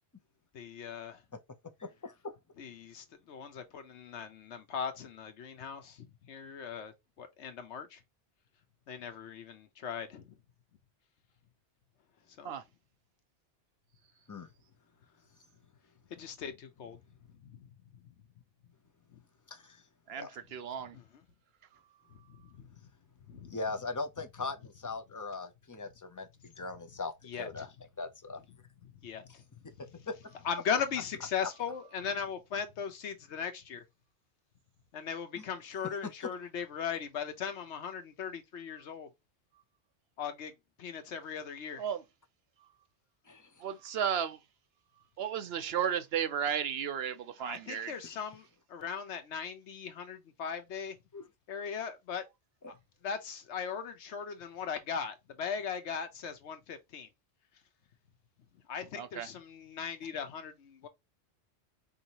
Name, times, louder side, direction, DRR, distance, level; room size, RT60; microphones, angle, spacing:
voice 1, 0.5-1.2 2.6-8.0 8.9-10.4 12.4-12.6 16.1-17.0 17.5-17.7 19.1-19.2 20.9-21.1 22.3-22.7 23.3-23.6 27.3-27.7 28.8-29.4 29.9-30.0 30.4-33.8 34.9-39.1 40.2-40.5 40.8-41.8 47.4-51.0 51.5-52.2 52.7-52.8 53.0-57.1 58.7-60.9, left 7 dB, 80° left, 1.1 m, -39 dB
voice 2, 1.8-2.3 14.3-14.5 19.5-19.8 20.2-20.4 23.5-27.7 28.0-28.4 30.1-30.3 35.4-35.5 36.2-36.3 43.3-43.5 48.1-48.2 51.1-51.3 52.6-52.7, left 3 dB, 30° left, 0.3 m, -40 dB
voice 3, 20.5-21.0 41.8-42.0 43.6-44.4 45.2-47.9 59.0-59.3, right 8 dB, 65° right, 0.8 m, -33 dB
4.7 x 2.7 x 2.8 m
omnidirectional pair, 1.2 m